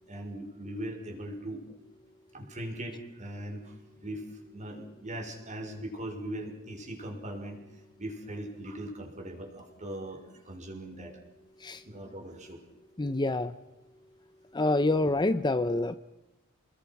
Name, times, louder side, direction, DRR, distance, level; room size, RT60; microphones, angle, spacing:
voice 1, 0.1-1.6 2.3-3.8 4.0-4.2 4.5-7.6 8.0-11.1 11.9-12.6, right 1 dB, 35° right, 3 dB, 5.6 m, -39 dB
voice 2, 13.0-13.5 14.5-15.9, left 2 dB, 20° left, 12 dB, 0.7 m, -26 dB
30.0 x 20.5 x 6.0 m, 1.0 s
head